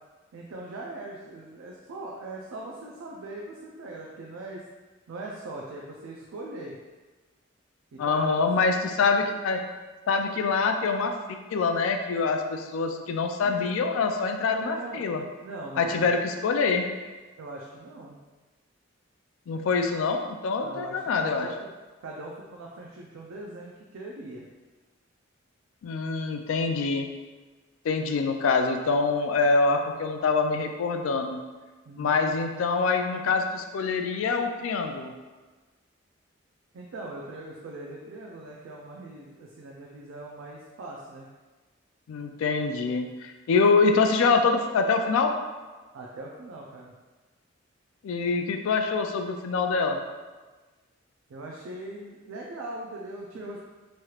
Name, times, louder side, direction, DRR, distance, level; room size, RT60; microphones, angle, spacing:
voice 1, 0.3-4.6 5.1-6.8 7.9-8.5 13.4-13.7 14.6-15.1 15.4-16.2 17.4-18.2 20.6-21.7 22.0-24.5 31.9-32.1 36.7-41.3 45.9-46.9 51.3-53.6, right 2 dB, 85° right, -2 dB, 0.4 m, -40 dB
voice 2, 8.0-9.6 10.1-11.1 11.5-15.2 15.8-16.9 19.5-21.5 25.8-27.1 27.8-31.4 32.0-35.1 42.1-45.3 48.0-50.0, left 4 dB, 80° left, 4 dB, 0.3 m, -25 dB
3.1 x 2.3 x 2.9 m, 1.3 s
head